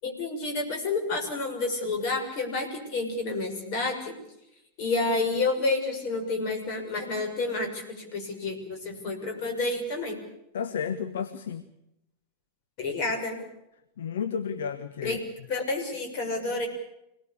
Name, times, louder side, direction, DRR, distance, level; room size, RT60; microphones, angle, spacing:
voice 1, 0.0-4.1 4.8-10.2 12.8-13.4 15.0-15.2 15.5-16.7, left 3 dB, 45° left, 4 dB, 6.3 m, -29 dB
voice 2, 10.5-11.6 14.0-15.2, left 7 dB, 60° left, 10 dB, 1.2 m, -32 dB
25.5 x 18.5 x 8.5 m, 0.85 s
figure-of-eight pair, 90°, 0 cm